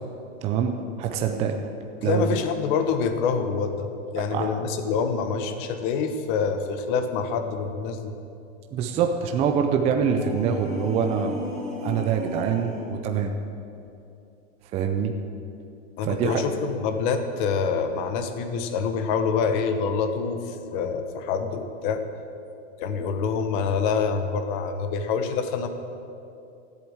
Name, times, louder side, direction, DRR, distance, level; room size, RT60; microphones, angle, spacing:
voice 1, 0.4-1.6 2.0-2.4 4.2-4.5 8.7-13.3 14.7-15.1 16.0-16.4, right 7 dB, 15° right, 4 dB, 0.5 m, -25 dB
voice 2, 2.0-8.1 16.0-22.0 22.8-25.7, left 5 dB, 40° left, 8 dB, 1.2 m, -26 dB
sound 1, 10.0-13.0, left 1 dB, ahead, 3.1 m, -35 dB
13.5 x 8.0 x 8.8 m, 2.7 s
supercardioid pair, 155°, 39 cm